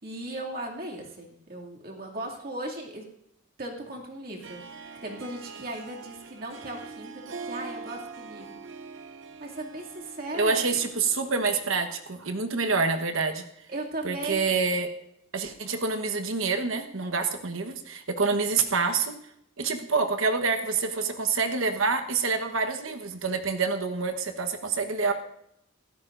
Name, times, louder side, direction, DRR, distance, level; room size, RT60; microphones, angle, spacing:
voice 1, 0.0-3.1 3.6-4.6 5.0-8.6 9.4-10.7 13.7-14.6, right 1 dB, 45° right, -1 dB, 2.4 m, -37 dB
Harp, 4.4-12.1, right 4 dB, 65° right, 0.8 m, -43 dB
voice 2, 10.4-13.4 14.0-14.9 15.3-19.2 19.6-25.1, right 4 dB, 85° right, 6 dB, 1.2 m, -27 dB
25.5 x 13.0 x 2.6 m, 0.76 s
head